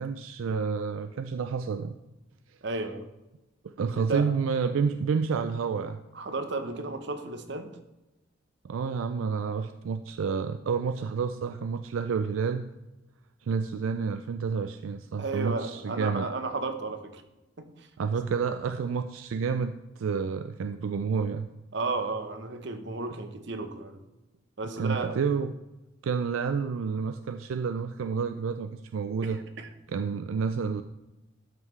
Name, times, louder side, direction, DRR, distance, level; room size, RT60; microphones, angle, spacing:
voice 1, 0.0-2.0 3.6-6.0 8.6-12.7 13.4-16.3 18.0-21.5 24.8-25.5 26.0-29.4 29.9-30.8, right 5 dB, 80° right, 9 dB, 0.4 m, -29 dB
voice 2, 2.6-3.1 3.9-4.3 6.1-7.7 15.2-17.2 17.6-17.9 21.7-24.0 24.6-25.2 29.2-29.7, right 3 dB, 60° right, 8 dB, 0.8 m, -33 dB
12.5 x 5.7 x 3.2 m, 1.0 s
head